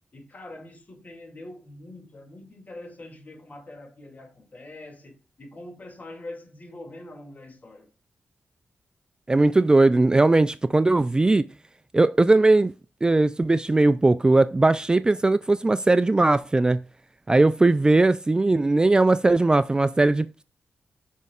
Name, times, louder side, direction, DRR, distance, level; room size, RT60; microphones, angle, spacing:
voice 1, 0.1-7.9, left 1 dB, 40° left, 2.5 m, -43 dB
voice 2, 9.3-11.5 11.9-12.7 13.0-16.8 17.3-20.4, right 2 dB, 20° right, 0.3 m, -19 dB
14.5 x 5.2 x 2.4 m
wide cardioid pair, 110°, 4 cm